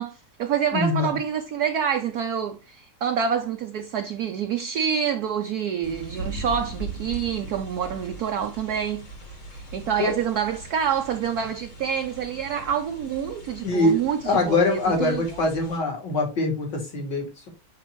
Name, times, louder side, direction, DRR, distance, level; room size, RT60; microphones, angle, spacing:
voice 1, 0.0-9.0 9.7-15.4, right 8 dB, 65° right, 1.0 m, -27 dB
voice 2, 0.7-1.1 10.0-10.1 13.6-17.5, left 2 dB, 55° left, 3.2 m, -24 dB
sound 1, 5.8-15.8, right 2 dB, 85° left, 5.6 m, -40 dB
9.9 x 3.9 x 3.0 m
omnidirectional pair, 2.3 m